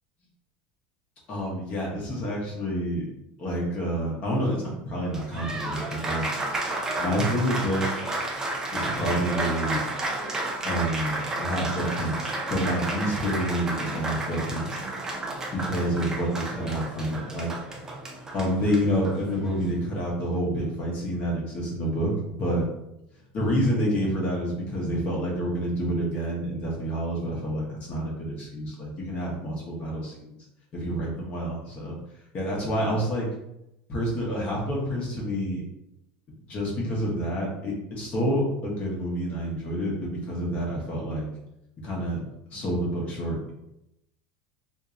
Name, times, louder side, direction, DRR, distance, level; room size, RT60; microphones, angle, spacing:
voice 1, 1.3-3.0 3.4-6.2 7.0-7.8 8.7-9.8 10.6-14.8 15.5-17.5 18.3-22.1 22.4-22.6 23.3-30.4 30.7-32.0 32.3-33.3 33.9-35.6 36.5-41.3 41.8-42.2 42.5-43.5, equal, 30° left, -3 dB, 0.9 m, -28 dB
Applause, 5.0-19.7, right 2 dB, 10° right, 0.4 m, -32 dB
4.3 x 2.6 x 2.5 m, 0.85 s
cardioid pair, 170°, 5 cm